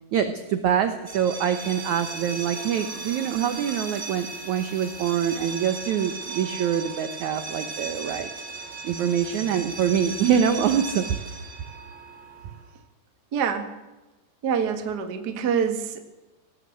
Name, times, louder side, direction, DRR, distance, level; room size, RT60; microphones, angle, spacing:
voice 1, 0.1-8.3 8.8-11.0, right 8 dB, 85° right, 9 dB, 1.6 m, -25 dB
sound 1, 1.0-12.7, right 4 dB, 50° right, 0.8 m, -37 dB
sound 2, 1.5-6.5 7.1-7.3, left 2 dB, 25° left, 3.2 m, -52 dB
voice 2, 13.3-13.8 14.4-16.0, right 7 dB, 70° right, 7 dB, 0.9 m, -26 dB
19.0 x 17.5 x 7.8 m, 1.1 s
omnidirectional pair, 4.9 m